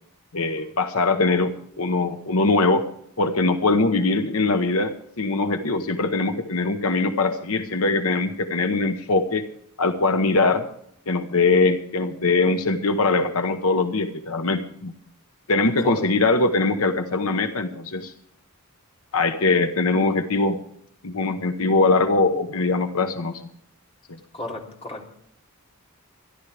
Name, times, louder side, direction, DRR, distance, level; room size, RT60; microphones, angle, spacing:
voice 1, 0.3-1.5 1.8-2.8 3.2-9.4 9.8-10.6 11.1-14.9 15.5-18.1 19.1-20.6 21.0-23.4 24.1-24.2, left 3 dB, 75° left, 7 dB, 1.1 m, -22 dB
voice 2, 24.3-25.1, left 1 dB, 30° left, 0 dB, 3.3 m, -34 dB
25.5 x 11.5 x 3.4 m, 0.71 s
head